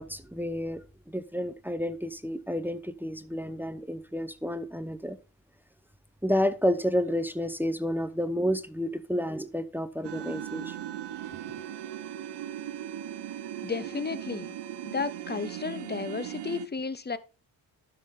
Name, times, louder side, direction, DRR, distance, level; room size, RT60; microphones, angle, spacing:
voice 1, 0.0-5.2 6.2-10.8, equal, 5° right, 0.7 m, -30 dB
sound 1, 10.0-16.7, right 11 dB, 70° right, 1.1 m, -38 dB
voice 2, 13.6-14.5 14.8-17.2, left 5 dB, 25° left, 0.9 m, -33 dB
12.0 x 5.7 x 3.8 m
supercardioid pair, 65°, 43 cm